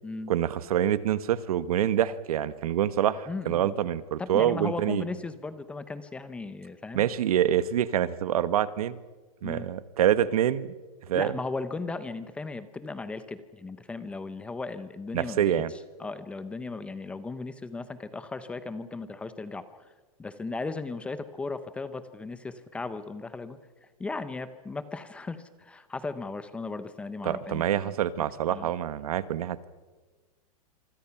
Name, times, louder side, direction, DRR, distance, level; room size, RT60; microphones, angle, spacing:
voice 1, 0.3-5.0 6.9-9.0 9.4-10.7 11.1-11.3 15.1-15.7 27.2-29.7, right 10 dB, 70° right, 15 dB, 1.3 m, -26 dB
voice 2, 3.3-3.7 4.2-7.1 9.4-9.7 11.1-15.4 16.0-19.9 20.2-23.6 24.0-27.9 28.5-28.7, left 3 dB, 5° left, 12 dB, 0.7 m, -36 dB
26.5 x 25.0 x 5.9 m, 1.3 s
supercardioid pair, 170°, 19 cm